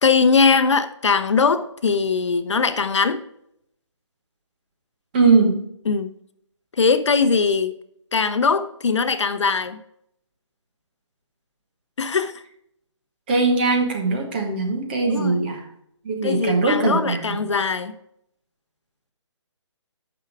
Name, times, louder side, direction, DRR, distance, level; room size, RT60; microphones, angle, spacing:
voice 1, 0.0-3.2 5.9-6.1 6.8-7.7 8.1-9.8 12.0-12.3 15.0-15.5 16.2-17.9, left 5 dB, 70° left, 0.8 m, -20 dB
voice 2, 5.1-5.6 13.3-15.6 16.0-17.4, right 3 dB, 20° right, 1.1 m, -20 dB
9.3 x 6.1 x 4.7 m
hypercardioid pair, 175°, 16 cm